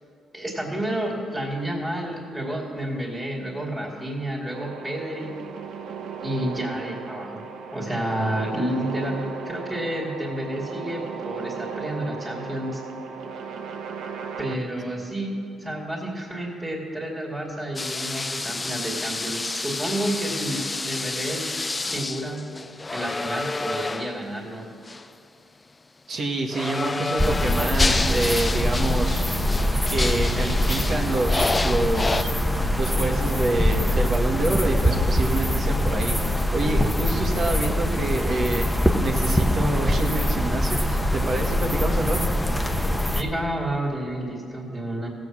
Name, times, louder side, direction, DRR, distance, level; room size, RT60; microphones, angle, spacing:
voice 1, 0.3-5.4 6.2-7.4 7.7-12.8 14.4-21.5 21.8-22.5 22.9-24.6 43.1-45.1, right 1 dB, 20° right, -2 dB, 2.6 m, -30 dB
sound 1, 4.5-14.5, right 6 dB, 75° right, 0.8 m, -36 dB
sound 2, 17.8-24.3 24.9-25.1 26.5-32.2, left 3 dB, 20° left, 0.3 m, -29 dB
voice 2, 26.1-29.2 29.7-32.3 32.8-42.3, right 2 dB, 50° right, 2 dB, 1.7 m, -27 dB
sound 3, 27.2-43.2, equal, 5° left, 1.0 m, -23 dB
16.0 x 8.0 x 6.2 m, 2.7 s
cardioid pair, 90°, 0 cm